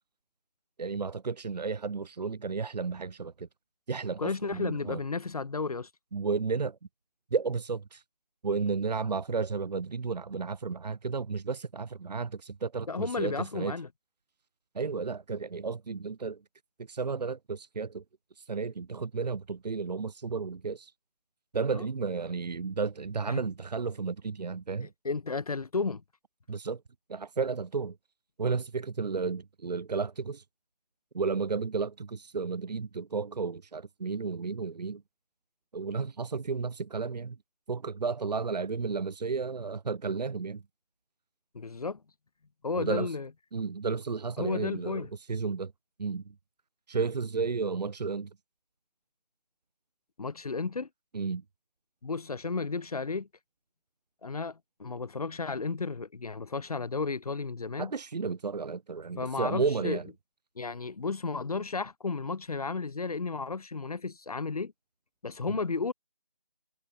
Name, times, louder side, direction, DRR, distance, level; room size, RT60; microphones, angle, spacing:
voice 1, 0.8-3.5 3.9-5.0 6.1-6.8 7.3-8.0 8.4-13.7 14.7-16.4 16.9-18.0 18.4-20.9 21.5-24.9 26.5-26.8 27.1-28.0 28.4-30.4 31.1-35.0 35.7-37.4 37.7-40.6 42.8-43.1 43.5-45.7 46.0-46.3 46.9-48.3 51.1-51.4 57.8-60.1 65.5-65.6, right 5 dB, 80° right, 0.5 m, -32 dB
voice 2, 4.2-5.9 12.9-13.9 21.7-21.9 23.3-23.4 24.8-26.0 41.5-42.0 42.6-43.3 44.4-45.1 50.2-50.9 52.0-53.3 54.2-57.9 59.2-60.0 60.6-64.7 65.2-65.9, left 4 dB, 65° left, 0.5 m, -33 dB
figure-of-eight pair, 165°, 21 cm